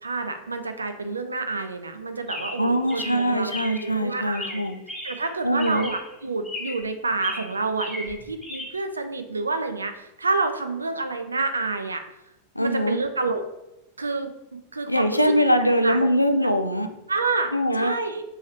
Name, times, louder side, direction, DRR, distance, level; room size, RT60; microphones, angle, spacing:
voice 1, 0.0-3.5 3.8-4.6 5.0-12.0 12.6-13.4 14.0-15.3 15.8-16.0 17.1-18.2, right 3 dB, 75° right, 7 dB, 0.4 m, -28 dB
Chirp tweet, 2.3-3.9 4.3-5.3 5.6-6.1 6.4-6.9 7.2-8.7, left 1 dB, 5° left, 1.2 m, -36 dB
voice 2, 2.6-4.7 5.4-5.9 12.6-13.0 14.9-16.9 17.5-18.0, equal, 90° left, 7 dB, 0.3 m, -22 dB
3.1 x 2.7 x 4.3 m, 0.90 s
figure-of-eight pair, 90°, 0 cm